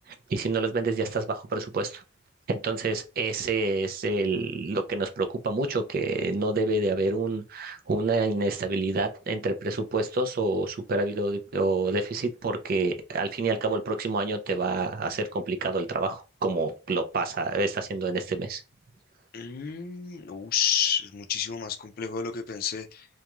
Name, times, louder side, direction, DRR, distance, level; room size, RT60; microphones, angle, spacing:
voice 1, 0.1-2.0 2.5-18.6, right 3 dB, 50° right, 0.4 m, -28 dB
voice 2, 19.3-23.1, left 8 dB, 50° left, 0.4 m, -30 dB
2.3 x 2.2 x 2.9 m
head